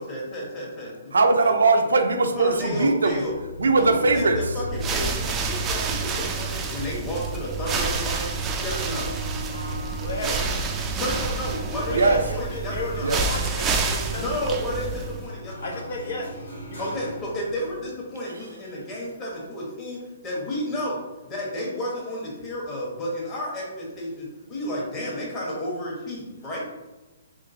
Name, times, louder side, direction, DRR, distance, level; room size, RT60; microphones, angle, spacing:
voice 1, 0.0-1.8 2.3-3.4 3.8-9.1 10.9-13.2 14.2-15.8 16.8-26.7, left 1 dB, 25° left, -4 dB, 1.4 m, -32 dB
voice 2, 1.1-3.2 3.6-4.4 10.2-10.4 11.9-12.2 13.0-13.2, right 3 dB, 85° right, 5 dB, 0.5 m, -20 dB
sound 1, 2.1-17.9, left 1 dB, 90° left, 1.3 m, -40 dB
sound 2, 4.6-15.3, right 4 dB, 20° right, 0.4 m, -28 dB
voice 3, 10.0-10.8 11.9-14.2 15.6-16.3 16.7-17.1, left 2 dB, 65° left, 0 dB, 0.9 m, -33 dB
3.7 x 3.1 x 2.7 m, 1.1 s
hypercardioid pair, 145°, 0 cm